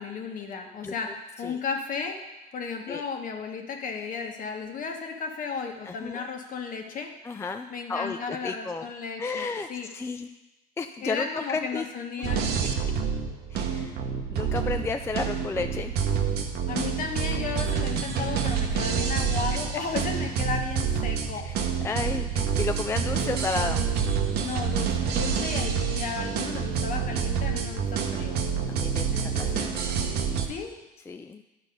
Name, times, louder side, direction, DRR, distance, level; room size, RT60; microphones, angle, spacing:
voice 1, 0.0-2.2 2.5-7.1 7.7-9.9 11.0-12.4 16.7-21.4 24.4-28.4 29.1-29.8 30.5-30.7, left 5 dB, 55° left, 3 dB, 1.3 m, -34 dB
voice 2, 5.9-6.2 7.2-8.9 9.2-9.7 9.9-10.3 10.8-11.8 13.5-14.0 14.3-15.9 21.4-23.9 28.6-29.9 31.1-31.4, left 4 dB, 15° left, 7 dB, 0.3 m, -32 dB
sound 1, 12.2-30.5, right 6 dB, 75° right, 0.9 m, -28 dB
11.0 x 4.1 x 5.1 m, 1.0 s
cardioid pair, 110°, 17 cm